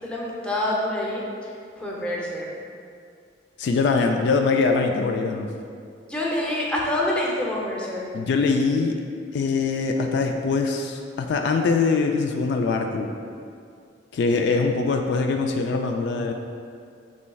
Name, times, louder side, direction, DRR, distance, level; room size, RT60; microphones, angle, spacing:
voice 1, 0.0-1.2 1.8-2.5 6.1-8.0, left 1 dB, 5° left, -5 dB, 0.7 m, -26 dB
voice 2, 3.6-5.5 8.1-9.0 9.3-13.1 14.1-16.3, left 4 dB, 70° left, 4 dB, 0.3 m, -23 dB
6.8 x 3.1 x 2.3 m, 2.3 s
head